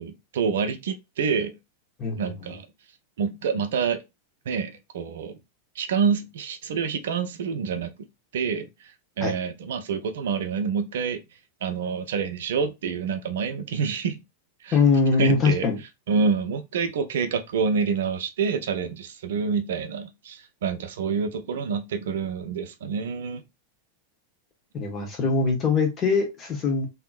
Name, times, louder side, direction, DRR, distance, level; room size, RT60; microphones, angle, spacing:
voice 1, 0.0-1.5 2.2-2.7 3.2-4.0 4.5-5.3 5.8-7.9 8.3-8.7 9.2-11.2 11.6-14.2 14.6-14.8 15.2-15.7 16.1-23.4, right 6 dB, 60° right, 0.4 m, -27 dB
voice 2, 2.0-2.3 9.2-9.3 14.7-15.8 24.7-26.9, left 4 dB, 25° left, 1.2 m, -22 dB
3.5 x 2.8 x 2.3 m
figure-of-eight pair, 90°, 0 cm